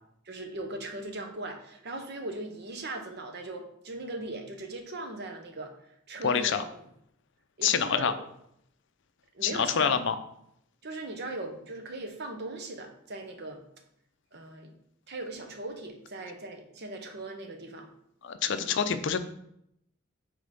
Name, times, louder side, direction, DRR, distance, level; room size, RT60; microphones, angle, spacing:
voice 1, 0.3-5.7 6.1-6.7 7.6-8.1 9.3-9.9 10.8-13.6 14.3-14.7 15.1-17.9 18.5-18.7, right 2 dB, 55° right, 5 dB, 0.9 m, -39 dB
voice 2, 6.2-6.6 7.6-8.1 9.4-10.2 18.2-19.2, left 7 dB, 60° left, 10 dB, 0.5 m, -26 dB
5.3 x 3.7 x 5.2 m, 0.75 s
head